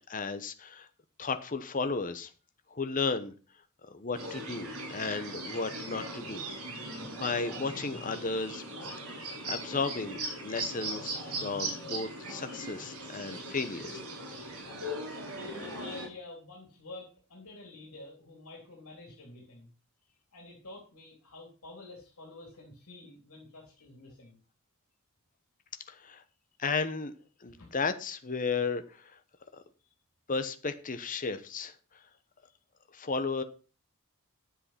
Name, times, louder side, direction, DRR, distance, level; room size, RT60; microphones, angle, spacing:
voice 1, 0.1-0.9 1.2-2.3 2.7-3.3 3.9-6.4 6.8-8.6 9.5-14.0 25.9-26.2 26.6-27.1 27.4-29.1 29.5-29.6 30.3-31.7 32.9-33.4, left 4 dB, 40° left, 10 dB, 1.0 m, -34 dB
sound 1, 4.1-16.1, right 1 dB, 80° right, 5.8 m, -39 dB
voice 2, 15.4-19.7 20.3-24.4 27.5-27.7, left 2 dB, 80° left, -1 dB, 3.6 m, -49 dB
9.9 x 7.8 x 5.8 m, 0.36 s
head